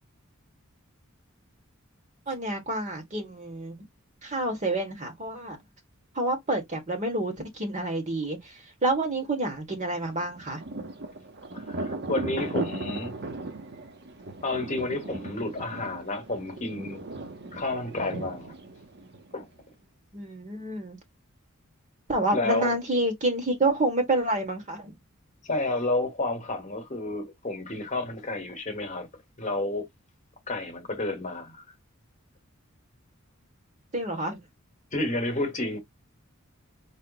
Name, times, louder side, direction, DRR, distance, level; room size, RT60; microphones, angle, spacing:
voice 1, 2.3-3.8 4.2-5.6 6.1-8.5 8.8-10.6 20.1-21.0 22.1-24.9 33.9-34.4, right 2 dB, 35° right, 1.3 m, -28 dB
Thunder, 10.1-19.6, right 2 dB, 50° right, 0.8 m, -37 dB
voice 2, 11.5-13.2 14.4-17.0 17.5-18.6 19.3-19.5 22.3-22.7 25.4-29.1 29.4-29.9 30.5-31.6 34.9-35.8, left 2 dB, 35° left, 1.1 m, -30 dB
4.2 x 2.1 x 3.9 m
head